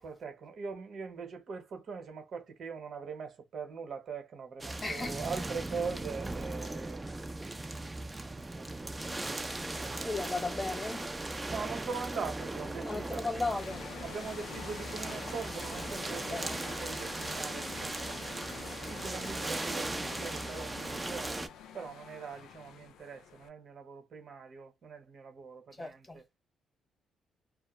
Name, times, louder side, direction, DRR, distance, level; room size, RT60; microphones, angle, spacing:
voice 1, 0.0-7.4 7.8-10.3 11.5-13.3 14.0-18.2 18.5-21.4 21.7-26.2, right 5 dB, 60° right, 1.1 m, -42 dB
sound 1, 4.6-21.5, right 2 dB, 20° right, 0.5 m, -38 dB
voice 2, 4.8-5.2 10.0-11.1 12.8-13.9 16.3-16.5 20.9-21.2 25.8-26.2, left 3 dB, 20° left, 1.0 m, -36 dB
sound 2, 12.2-23.5, left 8 dB, 80° left, 0.4 m, -48 dB
2.1 x 2.1 x 3.0 m
supercardioid pair, 65°, 0 cm